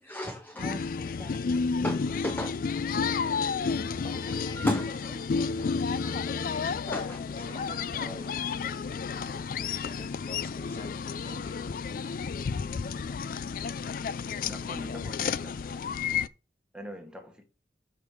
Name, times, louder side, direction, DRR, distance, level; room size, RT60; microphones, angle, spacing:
voice 1, 0.0-1.4 1.8-2.6 4.0-4.1 4.6-4.9 6.9-8.2, left 1 dB, 10° left, 0.7 m, -36 dB
sound 1, 0.6-16.3, left 5 dB, 50° left, 0.3 m, -31 dB
voice 2, 4.0-6.9 7.3-9.0 9.3-11.6, equal, 35° left, 1.3 m, -48 dB
voice 3, 14.4-15.7 16.7-17.4, equal, 5° right, 1.4 m, -43 dB
6.7 x 5.4 x 4.9 m
head